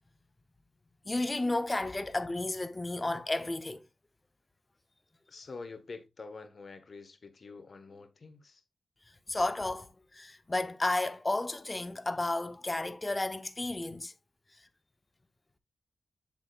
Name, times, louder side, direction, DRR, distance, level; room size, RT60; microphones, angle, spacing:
voice 1, 1.1-3.8 9.3-9.9 10.1-14.1, left 2 dB, 30° left, 0.9 m, -32 dB
voice 2, 5.3-8.6, left 4 dB, 60° left, 1.4 m, -47 dB
7.5 x 7.2 x 2.4 m
cardioid pair, 65°, 0 cm